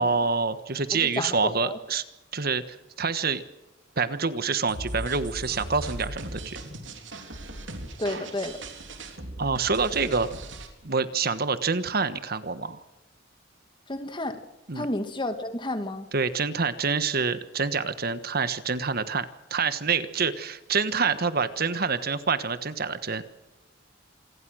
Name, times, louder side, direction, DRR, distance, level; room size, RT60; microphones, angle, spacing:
voice 1, 0.0-2.0 2.3-3.4 4.0-6.6 9.4-10.3 10.8-12.8 14.7-14.9 16.1-23.2, right 5 dB, 50° right, 12 dB, 1.3 m, -27 dB
voice 2, 0.9-1.8 8.0-8.6 13.9-14.4 14.7-16.1, left 1 dB, 25° left, 8 dB, 2.2 m, -31 dB
sound 1, 4.7-10.7, right 1 dB, 70° right, 3.6 m, -38 dB
27.5 x 20.5 x 6.3 m, 0.99 s
head